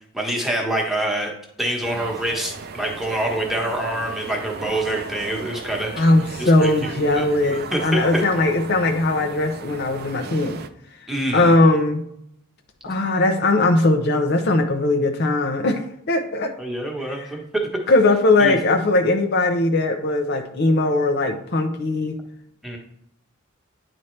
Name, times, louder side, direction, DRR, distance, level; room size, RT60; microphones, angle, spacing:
voice 1, 0.1-1.3 1.6-6.0 6.4-7.2 7.5-8.2 11.1-11.5 16.6-17.4 18.4-18.6 22.6-22.8, right 1 dB, ahead, -1 dB, 1.2 m, -26 dB
sound 1, 1.8-10.7, right 4 dB, 50° right, 0.5 m, -36 dB
voice 2, 6.0-10.6 11.3-12.0 12.8-16.5 17.0-17.3 17.9-22.2, left 2 dB, 50° left, 5 dB, 0.6 m, -19 dB
9.8 x 4.2 x 3.2 m, 0.74 s
head